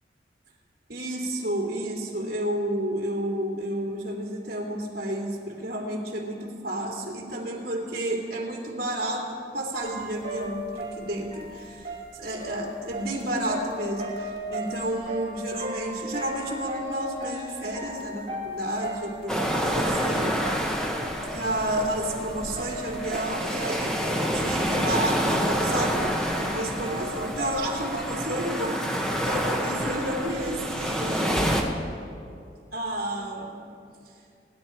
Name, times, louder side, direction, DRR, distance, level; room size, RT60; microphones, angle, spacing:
voice 1, 0.9-20.8 21.3-31.5 32.7-33.6, right 1 dB, 55° right, -1 dB, 2.9 m, -31 dB
sound 1, 9.7-28.1, right 1 dB, 30° right, 3.2 m, -38 dB
sound 2, 19.3-31.6, equal, 5° left, 1.1 m, -28 dB
26.5 x 11.0 x 4.5 m, 2.4 s
head